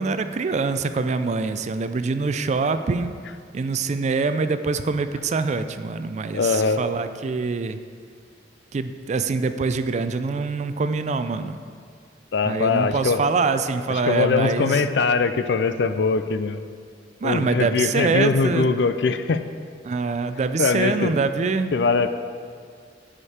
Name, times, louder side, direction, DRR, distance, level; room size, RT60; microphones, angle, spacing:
voice 1, 0.0-3.1 3.5-7.8 8.7-11.6 12.4-14.8 17.2-18.7 19.8-21.7, right 4 dB, 40° right, 10 dB, 0.4 m, -24 dB
voice 2, 6.3-6.8 12.3-13.2 14.1-16.6 17.2-19.4 20.6-21.1 21.7-22.1, left 4 dB, 75° left, 11 dB, 0.4 m, -21 dB
11.0 x 5.1 x 4.3 m, 2.1 s
head